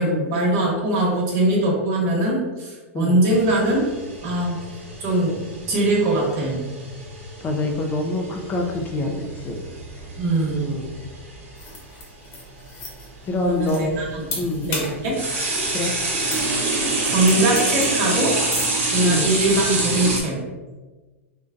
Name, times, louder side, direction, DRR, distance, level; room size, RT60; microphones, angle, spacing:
voice 1, 0.0-3.8 4.2-4.6 5.0-5.4 5.7-6.6 10.2-10.7 13.4-15.2 17.0-18.3 18.9-20.4, right 1 dB, 45° right, -2 dB, 1.1 m, -21 dB
sound 1, 3.3-11.5 12.6-12.7 13.5-20.2, right 2 dB, 70° right, 1.1 m, -27 dB
voice 2, 7.4-9.6 10.6-11.0 13.2-13.8 14.4-14.7 15.7-15.9 19.0-19.3, left 2 dB, 25° left, 3 dB, 0.4 m, -26 dB
sound 2, 11.6-18.8, left 3 dB, 45° left, 1.0 m, -36 dB
3.7 x 2.2 x 2.5 m, 1.3 s
hypercardioid pair, 115°, 7 cm